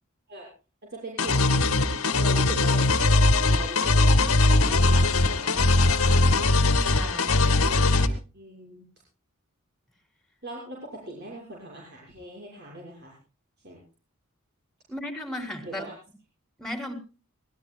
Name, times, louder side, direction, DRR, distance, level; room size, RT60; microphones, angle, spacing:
voice 1, 0.8-6.4 8.3-8.8 10.4-13.1 13.6-13.8 15.6-15.9, right 1 dB, 50° right, -3 dB, 6.7 m, -41 dB
sound 1, 1.2-8.1, left 2 dB, 85° left, 2.1 m, -20 dB
voice 2, 6.8-7.5 14.9-15.9 16.6-16.9, left 1 dB, ahead, 6 dB, 3.6 m, -35 dB
24.5 x 19.5 x 2.4 m, 0.35 s
head